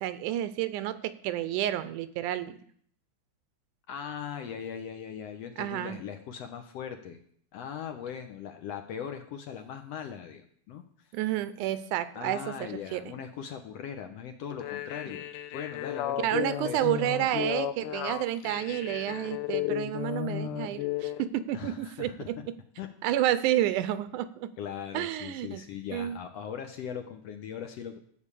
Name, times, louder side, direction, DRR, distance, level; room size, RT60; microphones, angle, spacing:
voice 1, 0.0-2.6 5.6-6.0 11.1-13.1 16.2-22.4 23.0-24.5 24.9-25.6 25.9-26.2, right 12 dB, 85° right, 14 dB, 2.2 m, -30 dB
voice 2, 3.9-7.2 7.5-10.8 12.1-15.3 15.5-16.9 21.5-22.3 22.8-22.9 24.6-28.0, left 8 dB, 70° left, 6 dB, 1.6 m, -39 dB
sound 1, 14.5-21.2, left 12 dB, 90° left, 2.3 m, -34 dB
13.0 x 5.1 x 8.3 m, 0.62 s
omnidirectional pair, 3.6 m